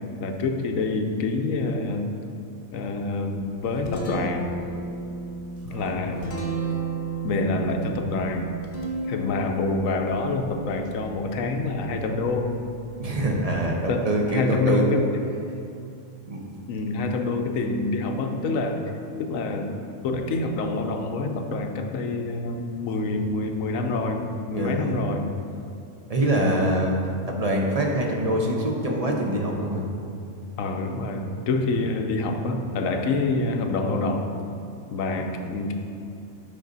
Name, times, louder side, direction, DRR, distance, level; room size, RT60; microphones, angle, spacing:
voice 1, 0.2-2.1 2.7-4.5 5.6-6.3 7.2-8.5 9.1-12.5 13.9-15.0 16.7-18.8 19.2-19.7 20.0-25.3 26.3-26.6 30.6-34.3 34.9-35.7, left 3 dB, 90° left, 5 dB, 1.1 m, -26 dB
Guitar, 3.4-13.2, right 3 dB, 50° left, 1.1 m, -34 dB
voice 2, 5.7-6.0 9.1-9.4 13.0-14.9 16.3-16.4 24.5-25.0 26.1-27.0 27.3-29.9, right 1 dB, 35° right, -1 dB, 0.9 m, -25 dB
8.5 x 5.4 x 4.0 m, 2.6 s
omnidirectional pair, 1.3 m